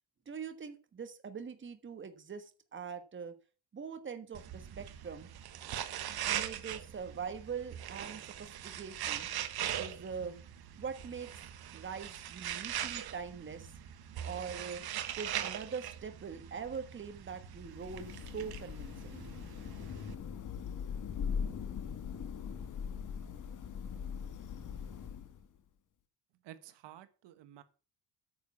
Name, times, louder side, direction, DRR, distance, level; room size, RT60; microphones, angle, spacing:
voice 1, 0.3-3.3 3.7-5.3 6.3-9.3 9.7-10.4 10.8-11.4 11.7-13.7 14.2-14.8 15.1-19.4, right 6 dB, 30° right, 8 dB, 1.4 m, -43 dB
sound 1, 4.3-20.1, right 10 dB, 60° right, 1.3 m, -41 dB
Thunder / Rain, 17.5-25.6, left 7 dB, 45° left, 1.5 m, -41 dB
voice 2, 26.4-27.6, right 12 dB, 85° right, 11 dB, 1.4 m, -52 dB
9.4 x 6.7 x 7.2 m, 0.37 s
cardioid pair, 135°, 42 cm